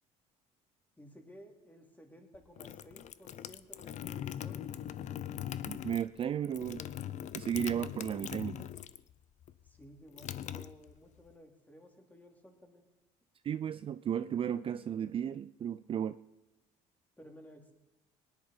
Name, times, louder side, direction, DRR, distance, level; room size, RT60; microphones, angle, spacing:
voice 1, 1.0-4.7 9.6-12.8 17.2-17.7, equal, 10° left, 4 dB, 2.9 m, -55 dB
sound 1, 2.3-9.1 9.4-11.3, left 10 dB, 55° left, 0.7 m, -41 dB
voice 2, 5.7-6.8 7.3-8.7 13.4-16.2, right 9 dB, 40° right, 13 dB, 0.4 m, -34 dB
18.5 x 10.5 x 5.6 m, 1.0 s
supercardioid pair, 90°, 15 cm